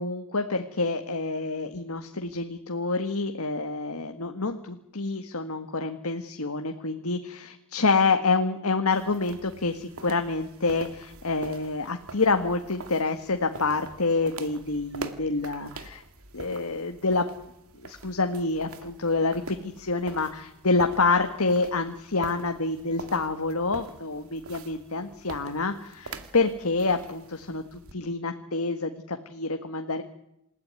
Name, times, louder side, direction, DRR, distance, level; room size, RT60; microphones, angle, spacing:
voice 1, 0.0-16.0 16.3-17.3 17.7-30.0, left 3 dB, 75° left, 6 dB, 1.7 m, -27 dB
sound 1, 8.9-27.9, right 3 dB, 70° right, 2.2 m, -44 dB
27.5 x 15.5 x 9.5 m, 0.81 s
head